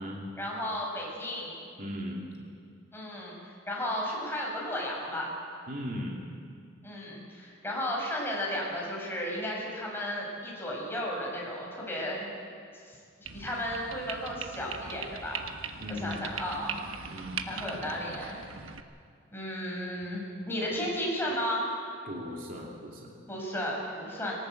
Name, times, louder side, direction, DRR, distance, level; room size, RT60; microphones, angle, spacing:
voice 1, 0.4-1.6 2.9-3.3 3.7-5.3 6.8-12.2 13.3-15.4 15.7-16.8 17.5-18.4 19.3-21.7 23.3-24.3, equal, 10° left, -3 dB, 6.2 m, -34 dB
voice 2, 1.8-2.3 5.7-6.2 15.8-16.1 17.0-17.4 22.0-23.1, equal, 45° right, -2 dB, 2.9 m, -37 dB
sound 1, 13.3-18.8, right 6 dB, 80° right, 1.2 m, -40 dB
22.0 x 18.5 x 7.9 m, 2.2 s
head